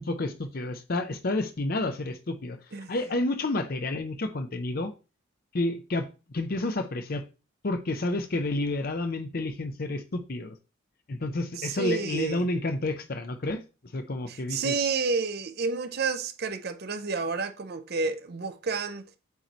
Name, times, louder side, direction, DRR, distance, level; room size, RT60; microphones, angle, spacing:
voice 1, 0.0-2.6 2.9-4.9 5.5-7.2 7.6-10.6 11.1-13.6 13.9-14.7, left 2 dB, 45° left, 0.6 m, -30 dB
voice 2, 11.6-12.5 14.3-19.0, right 4 dB, 50° right, 0.6 m, -30 dB
8.2 x 3.2 x 4.0 m
head